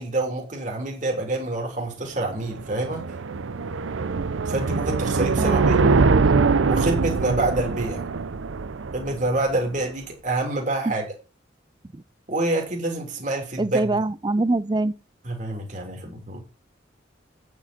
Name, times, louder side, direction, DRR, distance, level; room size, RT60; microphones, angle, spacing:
voice 1, 0.0-3.1 4.4-5.8 6.7-8.1 8.9-11.1 12.3-14.0 15.2-16.4, right 2 dB, 40° right, 3.3 m, -27 dB
sound 1, 2.2-9.6, right 4 dB, 85° right, 0.6 m, -23 dB
voice 2, 5.4-6.0 10.9-11.0 11.9-12.0 13.6-14.9, right 2 dB, 20° right, 0.4 m, -24 dB
9.2 x 8.3 x 4.3 m
head